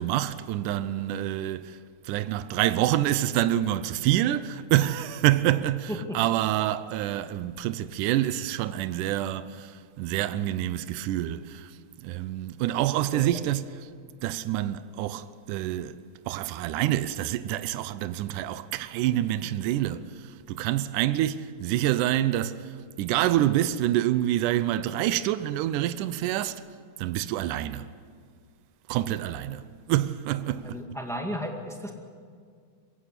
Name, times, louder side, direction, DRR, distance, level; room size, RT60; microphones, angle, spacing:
voice 1, 0.0-1.8 2.0-11.7 12.0-13.9 14.2-16.0 16.3-20.1 20.5-26.6 27.0-27.9 28.9-30.8, right 13 dB, 85° right, 2.2 m, -27 dB
voice 2, 30.6-31.9, equal, ahead, 1.2 m, -34 dB
22.0 x 16.5 x 8.3 m
omnidirectional pair, 3.6 m